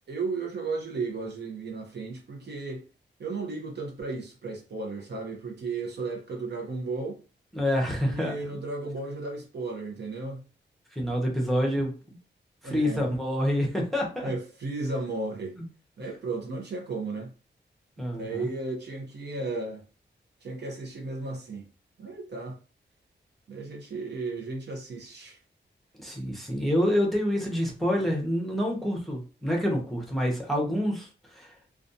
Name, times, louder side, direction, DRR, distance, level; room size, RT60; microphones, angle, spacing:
voice 1, 0.1-2.8 3.2-7.2 8.1-10.4 11.1-11.2 12.6-13.1 14.2-15.6 16.0-17.3 18.1-19.8 20.4-21.7 22.0-22.6 23.5-25.4, right 3 dB, 60° right, 0.7 m, -34 dB
voice 2, 7.5-8.4 10.9-11.9 12.6-14.3 18.0-18.5 26.0-31.5, equal, ahead, 0.8 m, -27 dB
2.4 x 2.2 x 2.6 m
wide cardioid pair, 100°, 19 cm